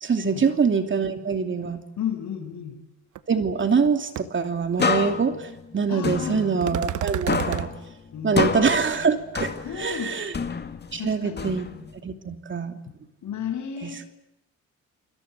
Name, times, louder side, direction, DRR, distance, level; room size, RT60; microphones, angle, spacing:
voice 1, 0.0-1.8 3.3-7.7 8.2-10.3 10.9-11.7 12.0-12.8 13.8-13.9, right 5 dB, 40° right, 7 dB, 2.8 m, -24 dB
voice 2, 2.0-2.8 5.9-6.5 8.1-8.6 9.6-10.2 11.0-11.6 12.9-13.0 13.2-14.1, left 8 dB, 70° left, 5 dB, 7.2 m, -33 dB
sound 1, 3.2-3.3 3.6-3.9 4.2-4.3 6.6-7.7, right 13 dB, 75° right, 1.2 m, -29 dB
sound 2, 4.8-7.0 7.3-10.0 10.3-12.0, left 5 dB, 35° left, 2.1 m, -29 dB
29.0 x 22.0 x 8.2 m, 0.86 s
cardioid pair, 90°, 30 cm